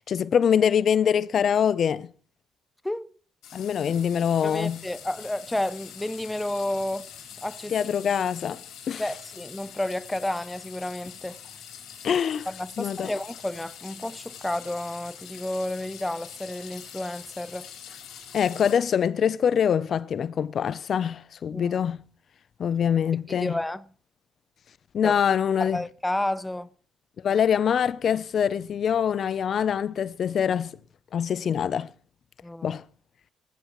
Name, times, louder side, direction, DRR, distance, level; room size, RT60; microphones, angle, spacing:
voice 1, 0.0-2.1 3.5-4.8 7.7-8.6 8.9-9.0 12.0-12.5 12.8-13.1 18.3-22.0 22.6-23.6 24.9-25.8 27.2-30.7 31.1-31.9 32.6-32.8, left 8 dB, 55° left, 0.5 m, -24 dB
sound 1, 3.4-18.8, left 8 dB, 85° left, 5.6 m, -44 dB
voice 2, 4.4-7.1 7.4-7.8 9.0-11.4 12.5-17.7 21.5-21.8 23.3-23.8 25.0-25.1 25.6-26.7 32.4-32.8, left 1 dB, 10° left, 0.6 m, -31 dB
19.5 x 15.0 x 3.1 m
cardioid pair, 90°, 0 cm